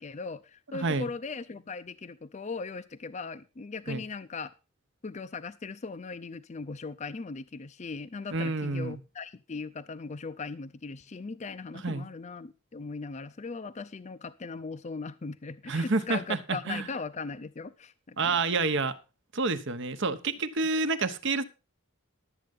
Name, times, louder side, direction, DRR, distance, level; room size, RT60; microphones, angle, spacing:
voice 1, 0.0-4.5 5.0-18.4, left 4 dB, 35° left, 0.5 m, -39 dB
voice 2, 0.7-1.1 3.9-4.0 8.3-9.0 11.8-12.1 15.7-16.9 18.2-19.0 19.3-21.4, right 3 dB, 55° right, 1.0 m, -29 dB
12.0 x 7.8 x 5.3 m
head